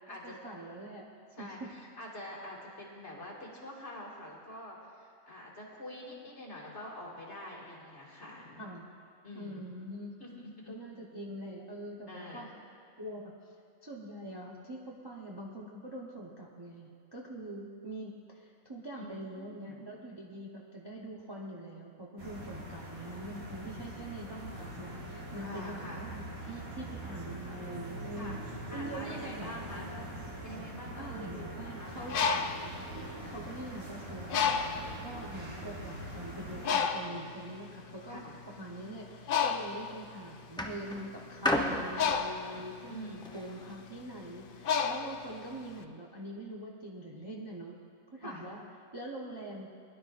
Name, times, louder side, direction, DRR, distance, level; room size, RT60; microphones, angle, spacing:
voice 1, 0.1-1.0 1.4-1.7 8.6-8.9 9.3-10.2 10.7-12.5 13.0-13.3 13.8-28.4 28.7-29.5 31.0-32.2 33.2-38.2 38.6-47.8 48.1-48.6 48.9-49.7, right 1 dB, 20° right, -3 dB, 0.8 m, -44 dB
voice 2, 1.4-8.6 9.2-9.6 10.2-10.8 12.1-12.5 19.0-19.8 25.4-26.0 28.2-28.4 28.7-29.9 30.4-32.2 37.1-37.2 38.1-38.4 42.3-42.6 42.9-43.3 48.2-48.5, left 1 dB, 50° left, -4 dB, 2.4 m, -46 dB
sound 1, 22.2-36.7, right 1 dB, 70° right, 2.3 m, -43 dB
Bird, 31.9-33.8 34.3-35.0 35.7-35.8 36.1-45.8, left 6 dB, 90° left, 0.4 m, -32 dB
sound 2, 39.6-39.9 40.6-43.8 44.6-44.7, left 1 dB, 5° left, 0.3 m, -34 dB
20.5 x 11.0 x 2.5 m, 2.4 s
omnidirectional pair, 1.6 m